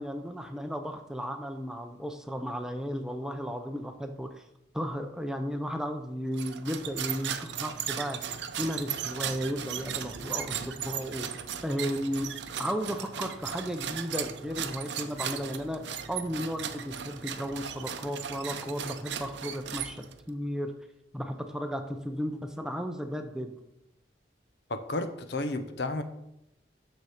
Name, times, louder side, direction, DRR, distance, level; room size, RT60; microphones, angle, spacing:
voice 1, 0.0-4.4 4.7-12.3 12.6-15.8 16.1-20.7 21.1-23.5, equal, 5° right, 0.5 m, -34 dB
sound 1, 6.3-20.3, right 8 dB, 75° right, 0.6 m, -37 dB
voice 2, 24.7-26.0, left 2 dB, 65° left, 0.7 m, -32 dB
6.8 x 6.4 x 4.9 m
head